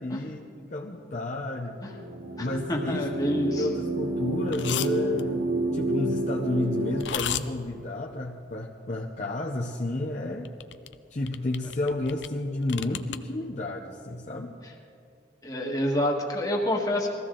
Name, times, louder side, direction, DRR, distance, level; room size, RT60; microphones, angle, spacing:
voice 1, 0.0-1.8 2.4-3.1 3.4-10.5 11.1-14.5, left 2 dB, 40° left, -1 dB, 0.7 m, -31 dB
sound 1, 1.7-7.0, right 1 dB, 45° right, 1.4 m, -29 dB
voice 2, 2.4-3.7 15.4-17.1, equal, 20° left, -1 dB, 1.5 m, -27 dB
sound 2, 4.5-4.9 5.2-5.3 7.0-7.4 10.4-11.0 11.3-12.3 12.6-13.2, left 10 dB, 70° left, 0.5 m, -32 dB
21.0 x 15.0 x 3.8 m, 2.5 s
head